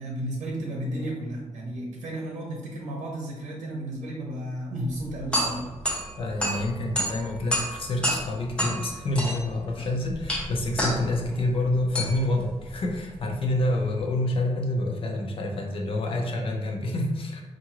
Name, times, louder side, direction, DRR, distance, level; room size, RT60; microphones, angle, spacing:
voice 1, 0.0-5.7, right 1 dB, 80° right, -2 dB, 0.7 m, -33 dB
sound 1, 4.8-14.0, equal, 10° left, 0.7 m, -31 dB
voice 2, 6.2-17.4, left 1 dB, 50° left, 1 dB, 0.6 m, -27 dB
4.6 x 2.5 x 2.9 m, 1.1 s
wide cardioid pair, 180°, 12 cm